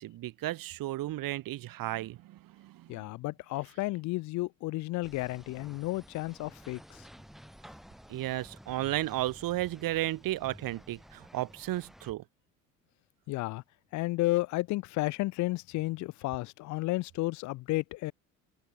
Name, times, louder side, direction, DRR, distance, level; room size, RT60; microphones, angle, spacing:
voice 1, 0.0-3.0 8.1-12.2, right 15 dB, 50° right, 1.9 m, -34 dB
voice 2, 2.9-7.1 13.3-13.6 13.9-18.1, left 20 dB, 45° left, 0.5 m, -32 dB
sound 1, 5.0-12.1, equal, ahead, 3.3 m, -53 dB
hypercardioid pair, 65°, 43 cm